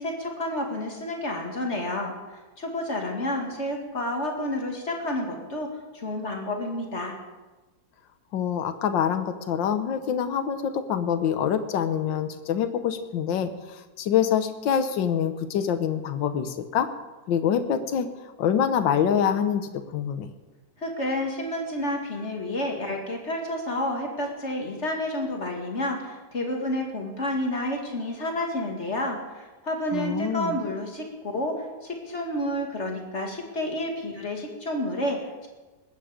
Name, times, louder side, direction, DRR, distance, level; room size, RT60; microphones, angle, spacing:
voice 1, 0.0-5.7 5.9-7.2 20.8-31.0 31.3-35.5, left 1 dB, 35° left, 1 dB, 2.3 m, -30 dB
voice 2, 8.3-16.9 17.3-18.1 18.4-20.3 29.9-30.6, left 8 dB, 75° left, 10 dB, 1.7 m, -25 dB
20.5 x 9.2 x 5.1 m, 1.2 s
omnidirectional pair, 2.1 m